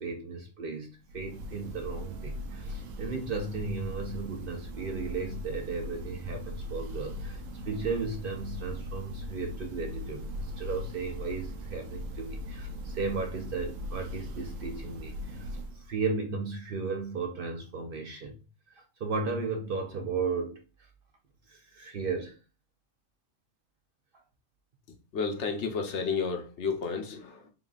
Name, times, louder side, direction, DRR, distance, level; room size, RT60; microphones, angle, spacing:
voice 1, 0.0-15.5 15.7-18.3 18.7-20.6 21.5-22.4, right 4 dB, 55° right, 0.7 m, -35 dB
Church bell, 1.0-16.0, left 1 dB, 90° right, 1.0 m, -39 dB
voice 2, 25.1-27.5, left 5 dB, 65° left, 1.0 m, -31 dB
3.9 x 3.7 x 2.4 m
omnidirectional pair, 1.3 m